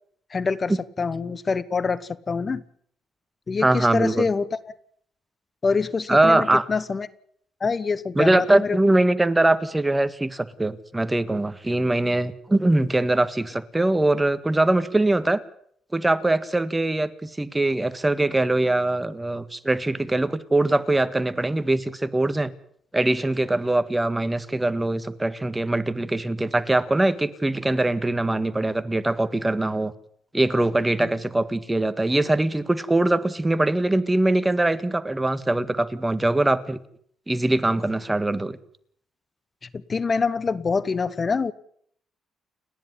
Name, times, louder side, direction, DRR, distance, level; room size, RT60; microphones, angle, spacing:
voice 1, 0.3-0.7 1.0-2.6 3.5-4.6 5.6-7.1 7.6-8.8 31.0-31.1 39.7-41.5, left 4 dB, 35° left, 17 dB, 1.1 m, -25 dB
voice 2, 3.6-4.3 6.1-6.6 8.1-15.4 15.9-22.5 22.9-29.9 30.3-36.8 37.3-38.6, right 2 dB, 15° right, 12 dB, 1.7 m, -22 dB
30.0 x 10.5 x 9.8 m, 0.65 s
cardioid pair, 90°, 0 cm